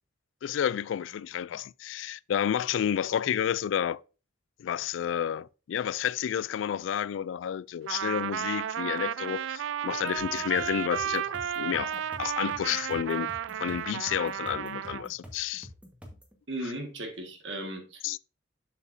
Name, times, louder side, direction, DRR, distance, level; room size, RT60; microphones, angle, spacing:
voice 1, 0.4-4.0 4.6-13.3 13.6-15.7 16.6-16.7 18.0-18.2, left 9 dB, 85° left, 0.3 m, -30 dB
Trumpet, 7.9-15.1, right 10 dB, 85° right, 0.3 m, -33 dB
sound 1, 10.2-16.4, equal, 5° right, 1.4 m, -48 dB
voice 2, 16.5-18.2, right 1 dB, 70° right, 1.7 m, -37 dB
7.0 x 6.9 x 2.6 m
head